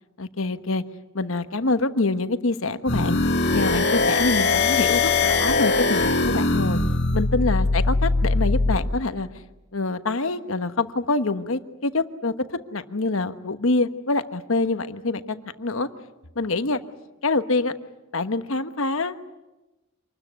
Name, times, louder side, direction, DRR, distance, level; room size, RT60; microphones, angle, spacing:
voice 1, 0.2-0.8 1.1-3.2 3.5-6.8 7.1-9.4 9.7-15.9 16.3-16.8 17.2-17.7 18.1-19.3, left 3 dB, 70° left, 10 dB, 1.2 m, -25 dB
sound 1, 2.9-8.8, left 3 dB, 50° left, 2.2 m, -21 dB
26.5 x 20.0 x 9.4 m, 1.0 s
head